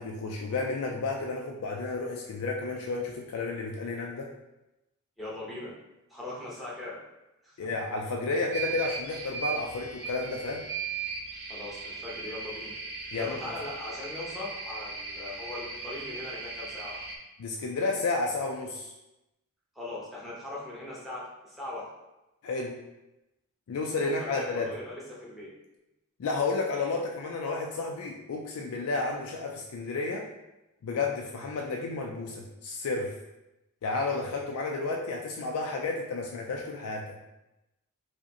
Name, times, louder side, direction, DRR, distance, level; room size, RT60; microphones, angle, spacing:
voice 1, 0.0-4.3 7.6-10.7 13.1-13.4 17.4-18.9 22.4-22.8 23.7-24.7 26.2-30.3 30.8-33.2 33.8-37.2, left 3 dB, 80° left, 0 dB, 0.4 m, -31 dB
voice 2, 5.2-5.8 6.1-7.0 7.4-7.7 11.5-12.8 13.1-17.1 19.7-21.9 24.0-25.5, left 2 dB, ahead, -7 dB, 0.9 m, -40 dB
sound 1, 8.5-17.2, right 5 dB, 50° right, 0.5 m, -38 dB
4.8 x 2.1 x 2.8 m, 0.96 s
head